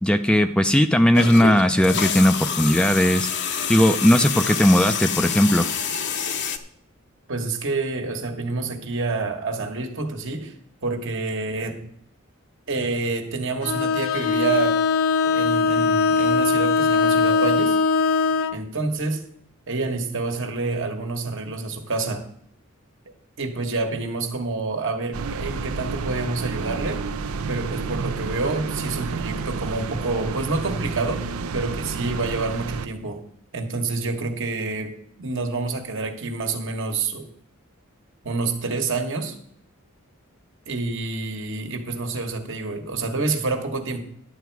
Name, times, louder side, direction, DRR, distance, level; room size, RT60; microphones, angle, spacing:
voice 1, 0.0-5.7, equal, 5° left, 8 dB, 0.4 m, -18 dB
sound 1, 1.1-6.6, left 7 dB, 55° left, 0.8 m, -27 dB
voice 2, 7.3-10.5 10.8-11.9 12.7-14.9 15.2-17.8 18.5-19.2 19.7-22.3 23.4-27.0 27.5-31.3 31.5-33.2 33.5-37.3 38.2-39.4 40.7-44.0, right 3 dB, 60° right, 4 dB, 1.4 m, -28 dB
Bowed string instrument, 13.6-18.6, left 4 dB, 70° left, 0.5 m, -20 dB
sound 2, 25.1-32.9, right 4 dB, 90° right, 0.6 m, -30 dB
11.0 x 8.0 x 4.7 m, 0.68 s
head